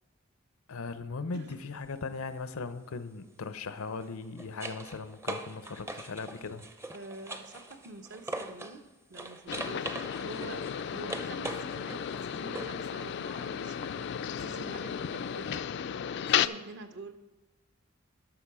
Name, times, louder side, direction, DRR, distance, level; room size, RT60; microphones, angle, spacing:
voice 1, 0.7-6.7, left 4 dB, 85° left, 12 dB, 0.7 m, -38 dB
sound 1, 1.3-1.6 3.9-8.8 9.1-12.9 15.5-15.6, right 2 dB, 15° right, 0.5 m, -42 dB
voice 2, 6.9-17.1, right 3 dB, 55° right, 9 dB, 0.7 m, -47 dB
sound 2, 9.5-16.5, left 8 dB, 55° left, 0.3 m, -34 dB
12.5 x 6.0 x 4.8 m, 1.1 s
head